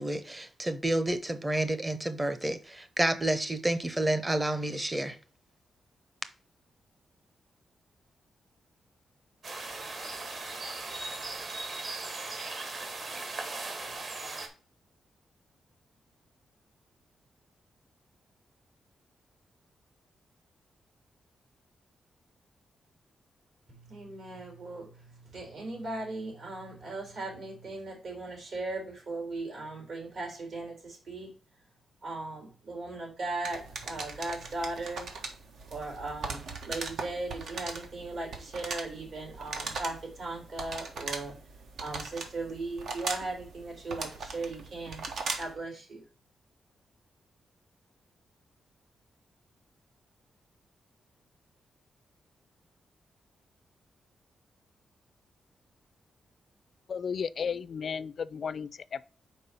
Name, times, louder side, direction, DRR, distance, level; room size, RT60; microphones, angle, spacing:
voice 1, 0.0-5.2, right 1 dB, 15° right, 0.7 m, -29 dB
sound 1, 9.4-14.5, right 3 dB, 50° right, 1.7 m, -38 dB
voice 2, 23.7-31.3 32.0-35.1 35.7-41.3 41.8-45.0 45.4-46.0, right 2 dB, 65° right, 3.5 m, -38 dB
sound 2, 33.4-45.6, right 4 dB, 80° right, 1.4 m, -39 dB
voice 3, 56.9-59.0, left 6 dB, 50° left, 0.4 m, -34 dB
5.4 x 4.7 x 5.4 m
wide cardioid pair, 140°, 0 cm